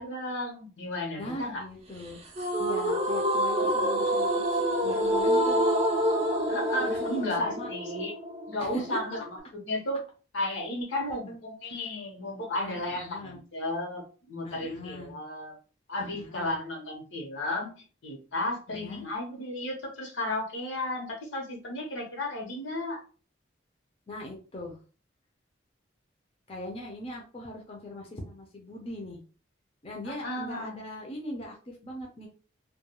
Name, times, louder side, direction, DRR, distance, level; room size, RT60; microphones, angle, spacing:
voice 1, 0.0-1.6 6.5-8.1 8.5-10.0 10.3-15.6 15.9-23.0 30.0-30.8, left 1 dB, 85° left, 0 dB, 0.9 m, -34 dB
voice 2, 1.2-2.2 2.6-5.7 6.8-7.7 8.6-9.0 10.9-11.4 12.6-13.4 14.4-15.1 16.0-16.6 18.7-19.0 24.1-24.8 26.5-29.2 29.8-32.3, left 1 dB, 30° left, 0 dB, 0.5 m, -40 dB
sound 1, 2.4-9.4, equal, 35° right, 0.4 m, -27 dB
2.3 x 2.2 x 2.9 m, 0.38 s
head